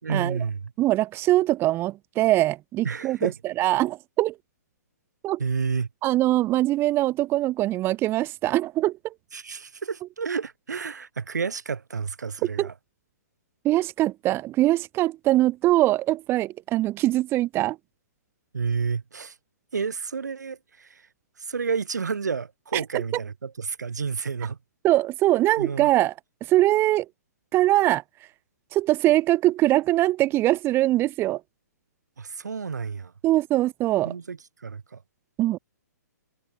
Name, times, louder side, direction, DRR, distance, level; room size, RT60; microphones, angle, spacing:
voice 1, 0.0-0.7 2.8-3.4 5.4-5.9 9.3-12.7 18.5-19.3 19.7-21.1 21.4-24.6 25.6-25.9 32.2-33.1 34.0-35.0, right 5 dB, 75° right, 3.8 m, -30 dB
voice 2, 0.8-4.3 5.2-5.4 6.0-9.1 12.6-12.7 13.6-17.8 22.7-23.0 24.8-26.1 26.5-27.1 27.5-28.0 28.7-31.4 33.2-34.1 35.4-35.6, right 16 dB, 25° right, 2.7 m, -22 dB
figure-of-eight pair, 125°, 9 cm